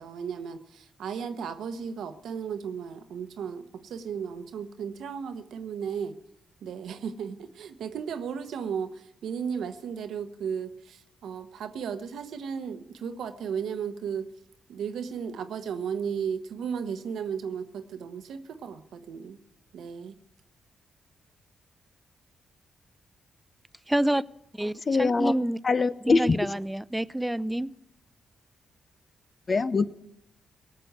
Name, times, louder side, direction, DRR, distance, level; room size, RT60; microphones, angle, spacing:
voice 1, 0.0-6.2 6.6-14.3 14.7-19.4 19.7-20.1, right 7 dB, 75° right, 10 dB, 1.0 m, -35 dB
voice 2, 23.9-24.2 24.5-25.6 26.0-27.7, right 1 dB, 10° right, 18 dB, 0.5 m, -28 dB
voice 3, 24.9-25.3 25.6-26.4 29.5-29.9, left 4 dB, 45° left, 14 dB, 0.7 m, -23 dB
18.5 x 6.8 x 8.1 m, 0.79 s
supercardioid pair, 45°, 0 cm